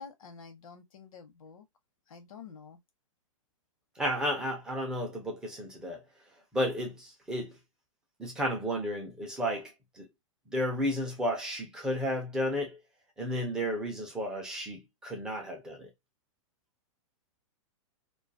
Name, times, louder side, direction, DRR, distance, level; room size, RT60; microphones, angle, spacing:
voice 1, 0.0-1.7 2.1-2.8, left 5 dB, 80° left, 0.8 m, -48 dB
voice 2, 4.0-6.0 6.5-7.5 8.2-10.1 10.5-12.8 13.2-15.9, equal, 5° right, 0.3 m, -33 dB
2.3 x 2.3 x 2.5 m
supercardioid pair, 170°, 17 cm